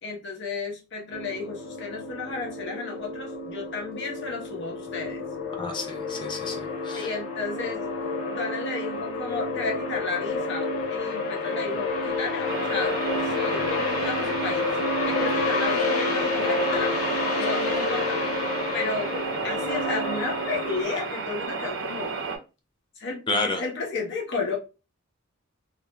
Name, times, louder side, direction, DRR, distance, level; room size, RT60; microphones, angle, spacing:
voice 1, 0.0-5.3 7.0-7.8 8.3-13.0 13.2-14.7 15.0-16.9 17.4-18.2 18.7-22.2 23.0-24.6, left 4 dB, 55° left, 0 dB, 0.8 m, -33 dB
sound 1, 1.1-20.8, left 3 dB, 90° left, 0.5 m, -29 dB
voice 2, 5.6-7.1 23.3-23.6, left 2 dB, 20° left, 3 dB, 0.3 m, -30 dB
sound 2, 12.5-22.4, right 5 dB, 65° right, 0.6 m, -32 dB
2.4 x 2.1 x 2.9 m, 0.30 s
head